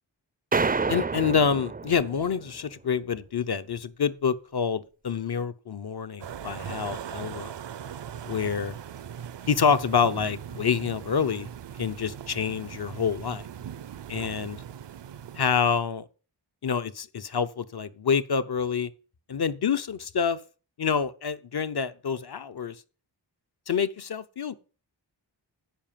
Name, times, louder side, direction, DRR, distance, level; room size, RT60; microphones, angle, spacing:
sound 1, 0.5-2.5, right 4 dB, 20° right, 0.4 m, -28 dB
voice 1, 0.9-7.5 8.2-8.7 9.5-11.5 11.8-13.5 14.1-14.6 15.4-16.1 16.6-18.9 19.3-20.4 20.8-22.7 23.7-24.5, left 6 dB, 60° left, 0.8 m, -27 dB
sound 2, 6.2-15.8, right 9 dB, 70° right, 0.6 m, -40 dB
10.5 x 5.0 x 7.4 m
wide cardioid pair, 80°, 44 cm